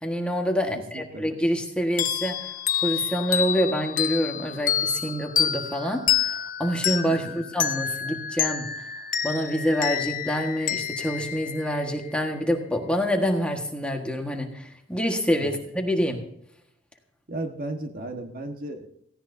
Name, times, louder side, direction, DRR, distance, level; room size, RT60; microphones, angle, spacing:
voice 1, 0.0-2.5 2.8-8.7 9.2-16.2, equal, 5° left, 2 dB, 1.5 m, -26 dB
voice 2, 0.7-1.2 7.1-7.5 15.4-15.6 17.3-18.9, right 2 dB, 50° right, 4 dB, 1.4 m, -35 dB
sound 1, 2.0-12.3, left 9 dB, 45° left, 0.8 m, -28 dB
17.5 x 16.5 x 2.7 m, 0.71 s
head